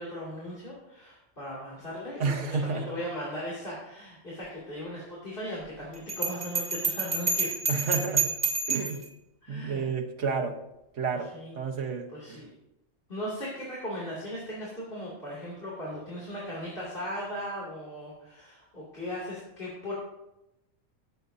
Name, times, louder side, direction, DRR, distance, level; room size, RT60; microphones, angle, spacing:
voice 1, 0.0-7.9 9.4-9.8 11.2-11.5 12.1-12.5 13.1-19.9, equal, 45° left, -7 dB, 2.9 m, -38 dB
voice 2, 2.2-2.9 7.7-8.3 8.7-9.0 9.5-10.6 10.9-12.4, right 5 dB, 75° right, 3 dB, 1.5 m, -31 dB
Bell, 6.1-9.0, right 4 dB, 35° right, 1.8 m, -28 dB
18.0 x 8.1 x 2.7 m, 0.91 s
omnidirectional pair, 1.3 m